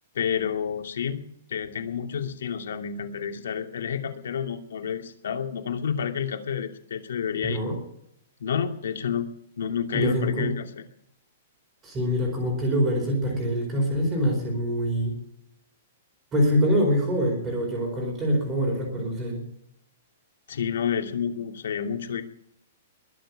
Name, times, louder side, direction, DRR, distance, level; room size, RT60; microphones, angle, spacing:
voice 1, 0.1-1.2 1.5-7.6 8.4-9.3 9.6-10.7 20.5-22.2, left 7 dB, 80° left, 4 dB, 2.6 m, -29 dB
voice 2, 7.4-7.8 9.9-10.5 11.8-15.1 16.3-19.4, equal, 10° right, -1 dB, 4.6 m, -25 dB
22.0 x 7.5 x 8.8 m, 0.73 s
hypercardioid pair, 180°, 0 cm